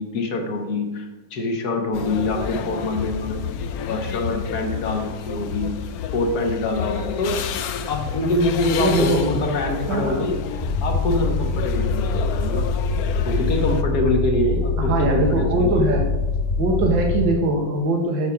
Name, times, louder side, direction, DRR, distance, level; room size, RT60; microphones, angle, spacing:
voice 1, 0.0-3.4 3.9-5.7 6.1-7.4 7.9-10.4 10.8-12.7 13.2-15.8, left 2 dB, 55° left, 3 dB, 1.6 m, -25 dB
sound 1, 1.9-13.8, left 7 dB, 75° left, 0.8 m, -29 dB
voice 2, 8.8-9.3 9.7-10.2 14.9-16.1 16.6-18.3, right 2 dB, 75° right, 1 dB, 1.9 m, -21 dB
sound 2, 10.6-17.3, left 4 dB, 20° left, 1.1 m, -24 dB
7.0 x 6.4 x 5.9 m, 1.1 s
omnidirectional pair, 2.1 m